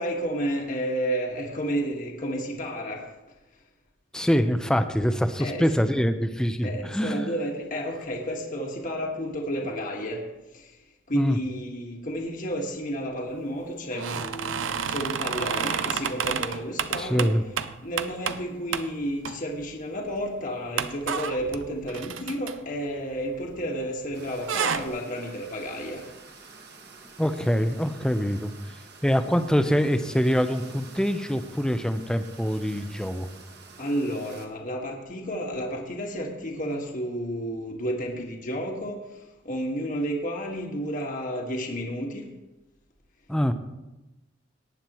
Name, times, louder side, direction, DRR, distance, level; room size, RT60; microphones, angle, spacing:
voice 1, 0.0-3.1 5.4-5.6 6.6-10.2 10.5-10.7 11.1-17.3 17.8-26.0 33.8-39.1 39.4-42.3, equal, 40° left, 1 dB, 1.6 m, -31 dB
voice 2, 4.1-7.3 11.1-11.4 17.0-17.4 27.2-28.5 29.0-33.3 43.3-43.5, equal, 5° left, 8 dB, 0.6 m, -24 dB
sound 1, 13.9-18.4 18.7-18.9 19.2-19.7 20.1-20.2 20.8-23.8 24.1-24.9, right 7 dB, 70° right, 0.5 m, -30 dB
sound 2, 24.1-34.5, right 4 dB, 55° right, 1.5 m, -49 dB
18.5 x 9.3 x 3.1 m, 1.1 s
head